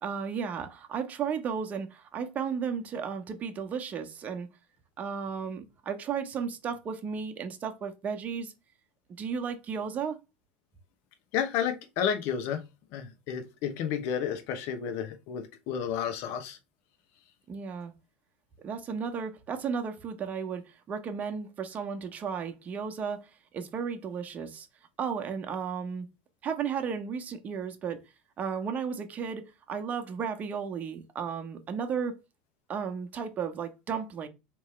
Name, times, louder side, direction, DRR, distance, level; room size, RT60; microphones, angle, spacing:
voice 1, 0.0-4.5 5.0-8.5 9.2-10.2 17.5-17.9 18.6-23.2 23.5-24.7 25.0-26.1 26.4-28.0 28.4-32.2 32.7-34.3, right 6 dB, 35° right, 0.9 m, -34 dB
voice 2, 11.3-12.6 12.9-16.6, left 8 dB, 60° left, 0.9 m, -31 dB
3.5 x 3.0 x 4.3 m
hypercardioid pair, 95°, 5 cm